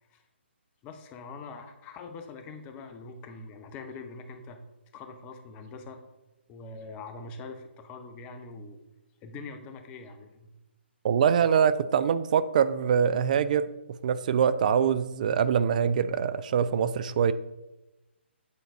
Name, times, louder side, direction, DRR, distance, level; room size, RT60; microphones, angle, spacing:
voice 1, 0.8-4.6 4.9-6.0 6.5-8.8 9.2-10.5, left 4 dB, 20° left, 6 dB, 0.7 m, -43 dB
voice 2, 11.0-13.7 14.0-17.3, right 7 dB, 40° right, 14 dB, 0.4 m, -24 dB
8.4 x 3.9 x 4.6 m, 1.0 s
figure-of-eight pair, 140°, 6 cm